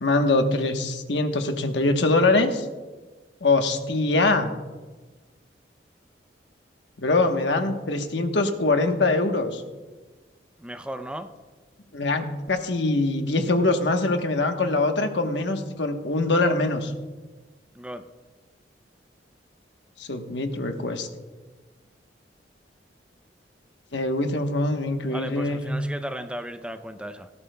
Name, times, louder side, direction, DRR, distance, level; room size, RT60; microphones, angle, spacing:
voice 1, 0.0-2.7 3.4-4.5 7.0-9.6 11.9-16.9 20.0-21.1 23.9-25.7, left 2 dB, 70° left, 6 dB, 1.1 m, -23 dB
voice 2, 10.6-11.3 17.7-18.0 25.1-27.3, right 1 dB, 5° right, 8 dB, 0.5 m, -35 dB
17.5 x 13.0 x 2.2 m, 1.3 s
head